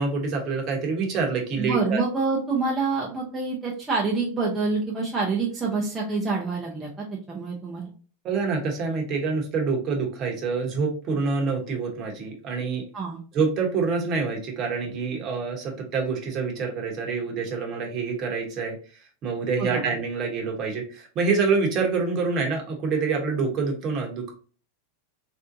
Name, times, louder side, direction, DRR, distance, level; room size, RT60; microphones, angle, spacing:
voice 1, 0.0-2.0 8.2-12.8 13.3-18.8 19.2-24.3, right 4 dB, 30° right, 2 dB, 0.9 m, -26 dB
voice 2, 1.6-6.9 7.3-7.9 12.9-13.2 19.6-19.8, right 4 dB, 10° right, -4 dB, 0.6 m, -26 dB
3.4 x 2.6 x 2.5 m, 0.39 s
supercardioid pair, 155°, 0 cm